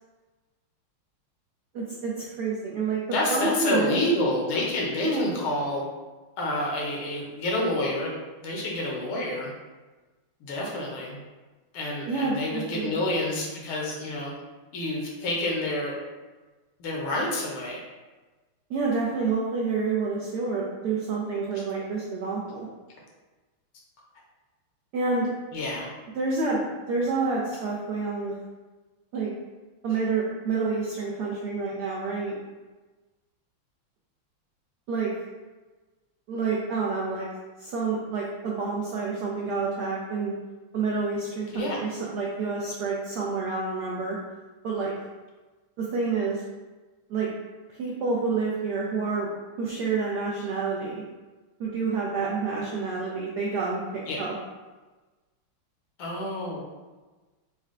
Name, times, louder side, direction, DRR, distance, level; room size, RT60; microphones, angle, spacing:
voice 1, 1.7-3.0 3.3-4.0 5.0-5.3 12.0-13.0 18.7-22.7 24.9-25.3 26.1-28.3 29.1-29.3 29.8-32.4 34.9-35.1 36.3-37.3 37.6-40.3 40.7-44.2 44.6-44.9 45.8-46.4 47.1-47.3 47.8-49.3 49.6-51.0 51.6-53.8 54.2-54.3, right 4 dB, 80° right, -4 dB, 0.9 m, -28 dB
voice 2, 3.1-5.8 6.4-9.5 10.4-11.2 11.7-14.3 14.7-16.0 16.8-17.8 25.5-25.9 29.9-30.0 41.5-41.8 54.0-54.2 56.0-56.6, left 1 dB, 75° left, -2 dB, 1.6 m, -28 dB
4.2 x 2.2 x 3.6 m, 1.2 s
omnidirectional pair, 2.4 m